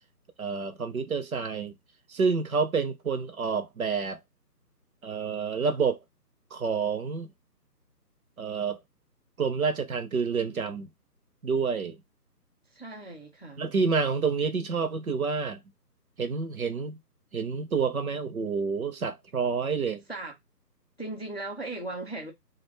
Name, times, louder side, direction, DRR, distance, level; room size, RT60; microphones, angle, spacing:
voice 1, 0.4-1.7 2.1-4.2 5.0-6.0 6.5-7.3 8.4-8.8 9.4-10.9 11.4-12.0 13.6-15.6 16.2-17.0 17.3-20.0, right 5 dB, 60° right, 0.6 m, -28 dB
voice 2, 12.7-13.6 20.1-20.3 21.0-22.3, right 2 dB, 40° left, 0.4 m, -37 dB
2.4 x 2.2 x 3.1 m
hypercardioid pair, 170°, 49 cm